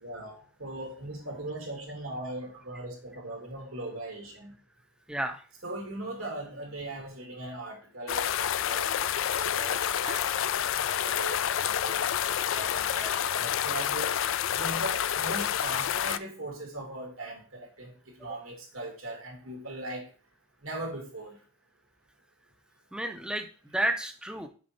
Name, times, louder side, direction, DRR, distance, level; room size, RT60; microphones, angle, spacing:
voice 1, 0.0-4.5 5.6-8.9 9.3-10.2 10.5-12.0 12.5-14.1 14.5-20.0 20.6-21.3, right 2 dB, 75° right, 1 dB, 2.4 m, -39 dB
voice 2, 5.1-5.5 9.3-9.4 22.9-24.5, right 1 dB, 5° right, 6 dB, 0.6 m, -32 dB
sound 1, 8.1-16.2, left 10 dB, 65° left, 0.4 m, -28 dB
6.4 x 5.1 x 4.3 m, 0.38 s
head